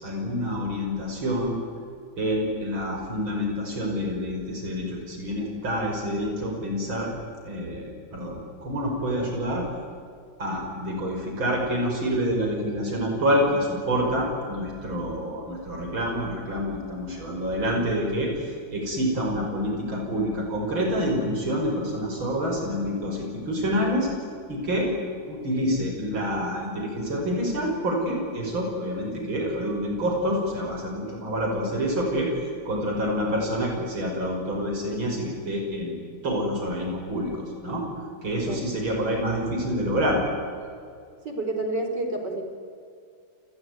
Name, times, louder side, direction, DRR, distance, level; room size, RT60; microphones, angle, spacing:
voice 1, 0.0-1.6 2.2-7.1 7.4-9.7 10.4-24.1 24.5-24.9 25.3-32.3 32.7-35.9 36.2-37.8 38.2-40.3, equal, 85° right, 1 dB, 6.4 m, -27 dB
voice 2, 41.2-42.4, right 2 dB, 60° right, 5 dB, 4.5 m, -29 dB
29.0 x 20.5 x 9.5 m, 2.3 s
omnidirectional pair, 2.1 m